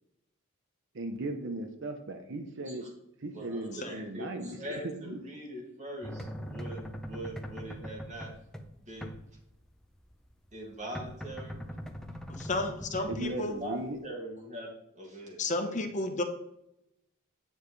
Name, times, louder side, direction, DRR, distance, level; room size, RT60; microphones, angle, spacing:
voice 1, 0.9-2.9 3.2-5.2 13.1-14.0, right 2 dB, 60° right, 6 dB, 0.8 m, -37 dB
voice 2, 3.3-8.3 8.8-9.2 10.5-11.6 12.9-15.8, right 1 dB, 35° right, -2 dB, 2.3 m, -42 dB
sound 1, 6.0-14.0, equal, 5° left, 0.7 m, -42 dB
voice 3, 12.3-13.5 15.4-16.2, left 2 dB, 35° left, 5 dB, 1.1 m, -32 dB
9.1 x 7.2 x 3.3 m, 0.81 s
head